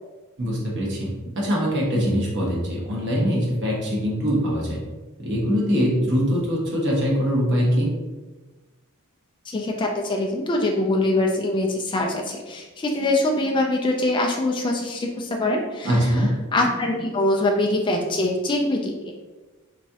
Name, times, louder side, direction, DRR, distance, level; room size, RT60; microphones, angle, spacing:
voice 1, 0.4-1.1 1.4-4.8 5.2-7.9 15.8-16.3, equal, 55° right, -3 dB, 1.0 m, -22 dB
voice 2, 9.4-15.9 16.5-19.1, left 2 dB, 20° left, 0 dB, 0.3 m, -23 dB
3.5 x 3.0 x 2.7 m, 1.2 s
head